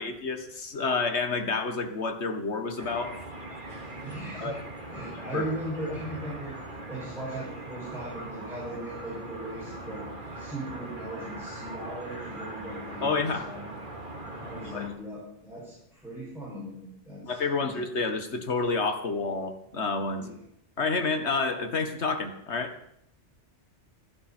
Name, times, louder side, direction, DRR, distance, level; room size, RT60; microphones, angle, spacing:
voice 1, 0.0-3.1 4.4-4.6 5.1-5.4 13.0-13.5 14.7-14.9 17.2-20.3 20.8-22.8, left 4 dB, 65° left, 7 dB, 1.9 m, -29 dB
sound 1, 2.8-14.9, right 2 dB, 45° right, 2.5 m, -41 dB
voice 2, 4.0-4.6 4.9-6.6 6.9-10.1 10.3-13.6 14.4-17.7 20.2-20.4, right 1 dB, ahead, -8 dB, 6.8 m, -38 dB
26.5 x 11.0 x 4.5 m, 0.75 s
omnidirectional pair, 1.2 m